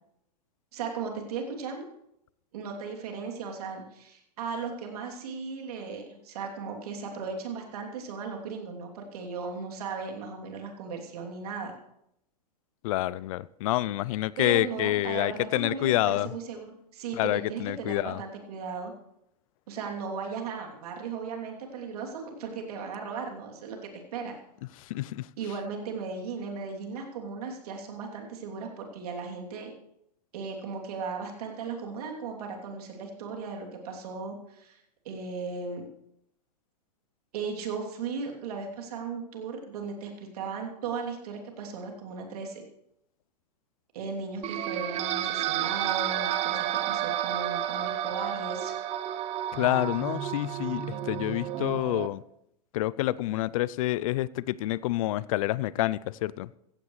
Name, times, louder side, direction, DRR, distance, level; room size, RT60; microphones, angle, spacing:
voice 1, 0.7-1.9 2.5-11.7 14.4-16.7 16.9-18.9 19.7-24.4 25.4-29.7 30.3-34.8 35.0-35.8 37.3-42.6 43.9-48.7, right 5 dB, 65° right, 3.0 m, -36 dB
voice 2, 12.8-16.3 17.1-18.2 24.9-25.3 49.5-52.2 52.7-56.5, left 16 dB, 55° left, 0.5 m, -28 dB
sound 1, 44.4-52.1, right 11 dB, 30° right, 0.8 m, -31 dB
16.0 x 15.0 x 3.2 m
hypercardioid pair, 115°, 21 cm